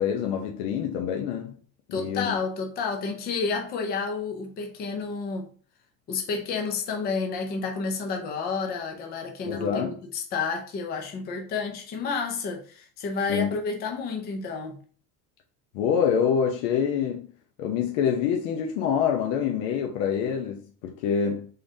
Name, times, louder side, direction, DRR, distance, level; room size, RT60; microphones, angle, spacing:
voice 1, 0.0-1.5 1.9-2.4 9.5-10.0 13.3-13.5 15.7-17.3 17.6-21.5, left 7 dB, 55° left, 0.8 m, -26 dB
voice 2, 1.9-5.5 6.1-14.8, left 4 dB, 20° left, 0.5 m, -30 dB
5.2 x 3.8 x 2.6 m
cardioid pair, 175°, 46 cm